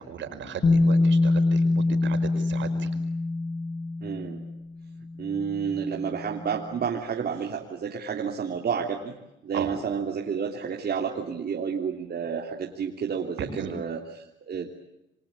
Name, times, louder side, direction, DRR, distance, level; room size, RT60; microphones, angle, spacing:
voice 1, 0.0-2.9 9.5-9.7 13.4-13.7, right 7 dB, 70° right, 7 dB, 5.5 m, -36 dB
Bass guitar, 0.6-6.7, left 2 dB, 40° left, 2.9 m, -25 dB
voice 2, 4.0-4.4 5.2-9.1 9.4-14.7, right 6 dB, 50° right, 0 dB, 3.3 m, -30 dB
29.0 x 23.5 x 8.6 m, 0.91 s
cardioid pair, 90°, 20 cm